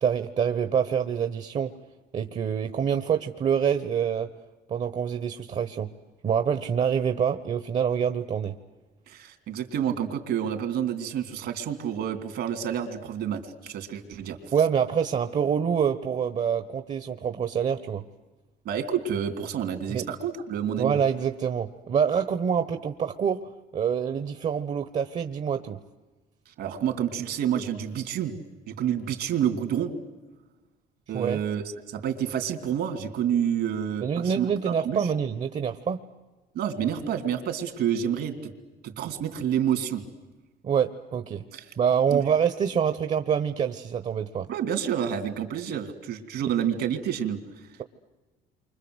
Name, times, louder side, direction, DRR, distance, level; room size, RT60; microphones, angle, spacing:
voice 1, 0.0-1.7 2.1-4.3 4.7-5.9 6.2-8.5 14.5-18.0 19.9-20.1 20.8-25.8 31.1-31.4 34.0-36.0 40.6-41.4 41.8-44.5, right 7 dB, 45° right, 10 dB, 1.1 m, -26 dB
voice 2, 9.1-14.4 18.6-21.0 26.6-28.3 28.7-29.9 31.1-34.5 34.8-35.1 36.5-38.5 38.8-40.0 41.5-41.7 42.1-42.2 44.5-47.4, right 9 dB, 75° right, 7 dB, 3.4 m, -29 dB
29.0 x 25.0 x 8.1 m, 1.2 s
cardioid pair, 110°, 17 cm